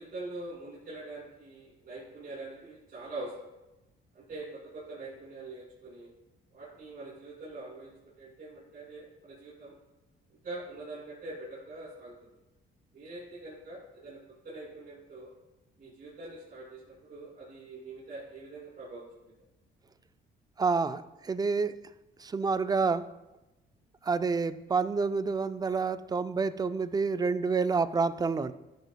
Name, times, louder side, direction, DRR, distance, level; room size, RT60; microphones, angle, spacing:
voice 1, 0.0-3.3 4.1-6.1 6.5-9.7 10.4-12.1 12.9-14.2 14.4-15.3 15.8-19.3, right 2 dB, 45° right, -9 dB, 2.8 m, -44 dB
voice 2, 20.6-21.7 22.2-23.1 24.0-28.5, right 4 dB, 20° right, 13 dB, 0.4 m, -28 dB
13.0 x 6.2 x 2.3 m, 1.0 s
cardioid pair, 90°, 20 cm